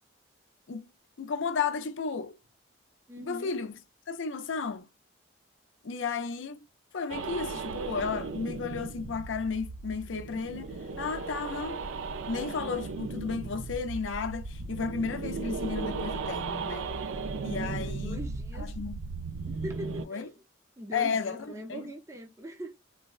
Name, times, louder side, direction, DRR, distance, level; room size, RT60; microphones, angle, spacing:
voice 1, 1.2-2.4 3.2-3.8 4.1-4.9 5.8-6.6 6.9-11.8 12.3-16.9 17.4-18.2 18.5-19.0 20.1-20.3 20.9-21.9, left 5 dB, 65° left, 0.5 m, -33 dB
voice 2, 3.1-3.6 17.5-18.8 19.5-20.4 20.8-22.7, equal, 15° right, 0.5 m, -42 dB
sound 1, 7.1-20.0, right 4 dB, 85° right, 0.4 m, -36 dB
3.9 x 2.1 x 2.4 m
head